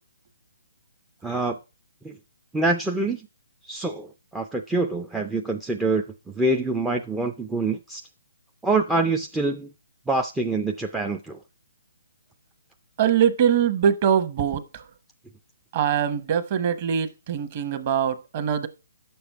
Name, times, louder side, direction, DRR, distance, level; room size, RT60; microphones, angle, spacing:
voice 1, 1.2-1.6 2.0-2.2 2.5-3.3 3.6-8.1 8.6-9.7 10.1-11.4, right 2 dB, 5° right, 0.4 m, -25 dB
voice 2, 13.0-14.8 15.7-18.7, right 8 dB, 30° right, 1.0 m, -23 dB
9.6 x 6.9 x 4.6 m
hypercardioid pair, 170°, 0 cm